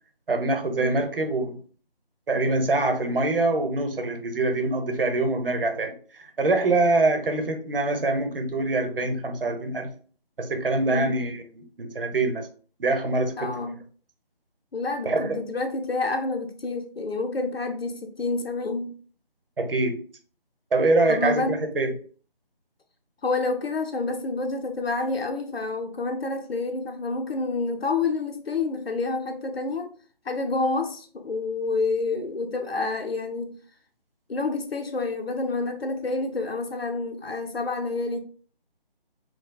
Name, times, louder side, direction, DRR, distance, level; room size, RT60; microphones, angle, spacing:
voice 1, 0.3-1.6 2.3-9.9 10.4-12.5 12.8-13.5 15.0-15.4 19.6-20.0 20.7-21.9, right 2 dB, 70° right, 0.9 m, -24 dB
voice 2, 10.9-11.2 13.4-13.8 14.7-18.9 21.1-21.9 23.2-29.9 30.2-33.5 34.3-38.2, left 3 dB, 85° left, 0.7 m, -28 dB
4.6 x 2.2 x 2.2 m
figure-of-eight pair, 160°, 29 cm